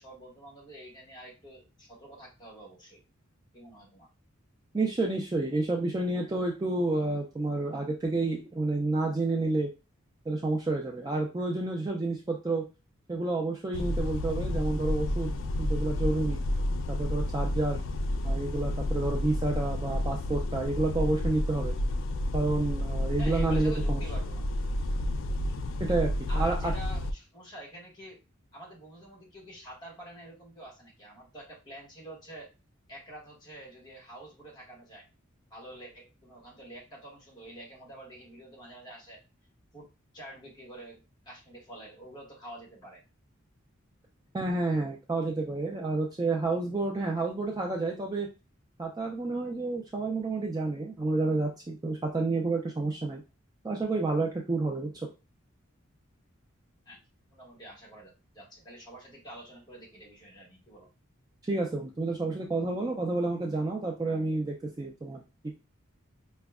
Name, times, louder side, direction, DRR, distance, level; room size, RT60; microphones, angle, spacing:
voice 1, 0.0-3.0 3.5-4.1 23.2-24.5 26.3-28.2 28.5-32.5 32.9-35.1 35.5-39.2 39.7-39.9 40.1-43.0 56.8-57.0 57.3-60.9, right 1 dB, 20° left, -2 dB, 1.4 m, -47 dB
voice 2, 4.7-9.7 10.3-12.6 13.1-16.4 16.9-17.8 18.2-21.7 22.3-24.0 25.8-26.7 44.3-48.3 48.8-53.2 53.6-55.1 61.5-65.2, right 2 dB, 20° right, 1 dB, 0.3 m, -30 dB
sound 1, 13.7-27.1, left 1 dB, 65° left, 0.3 m, -30 dB
4.9 x 2.1 x 2.3 m, 0.29 s
head